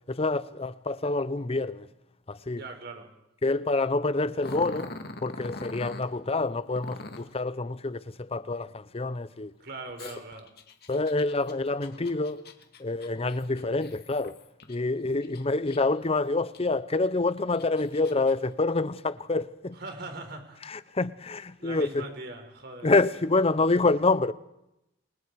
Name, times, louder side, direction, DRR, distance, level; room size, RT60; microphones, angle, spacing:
voice 1, 0.1-1.9 2.3-2.6 3.4-4.9 5.2-9.5 10.9-12.4 12.8-14.4 14.7-19.8 20.7-22.1 22.8-24.3, left 3 dB, 35° left, 0.8 m, -27 dB
voice 2, 2.5-3.1 9.6-10.5 19.7-20.7 21.6-22.9, right 2 dB, 60° right, 4.5 m, -41 dB
Growling, 4.4-6.1 6.8-7.4 10.0-14.8 15.2-16.0 16.5-16.6 17.3-18.3, left 2 dB, 60° left, 1.9 m, -42 dB
28.5 x 24.5 x 4.8 m
head